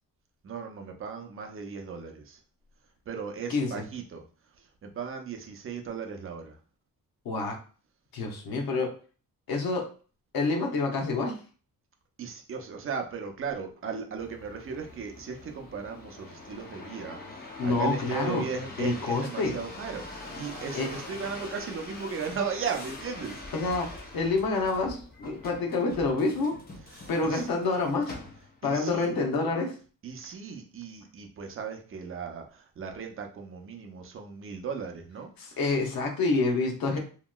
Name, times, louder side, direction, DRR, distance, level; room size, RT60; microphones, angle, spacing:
voice 1, 0.4-2.4 3.1-4.2 4.8-6.5 12.2-17.2 17.6-23.4 26.9-27.5 28.6-29.1 30.0-32.4 32.8-35.3, right 5 dB, 40° right, 4 dB, 0.5 m, -36 dB
voice 2, 3.5-3.8 7.2-7.6 8.1-8.9 9.5-9.8 10.3-11.4 17.6-18.4 18.8-19.6 20.7-20.9 23.5-23.9 24.1-26.6 27.1-28.1 28.6-29.7 35.4-37.0, left 3 dB, 85° left, 2 dB, 0.8 m, -27 dB
sound 1, 14.2-28.7 29.3-29.8, left 2 dB, 25° left, 0.6 m, -44 dB
2.9 x 2.8 x 2.2 m, 0.39 s
wide cardioid pair, 160°, 35 cm